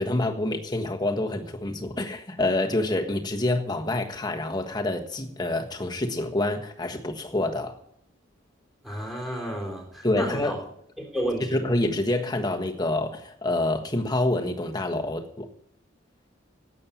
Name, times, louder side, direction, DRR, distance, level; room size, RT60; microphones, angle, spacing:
voice 1, 0.0-7.8 10.0-10.5 11.5-15.5, left 1 dB, 20° left, 1.4 m, -27 dB
voice 2, 8.8-10.6 11.0-11.6, right 1 dB, ahead, 3.7 m, -31 dB
12.0 x 8.7 x 8.5 m
head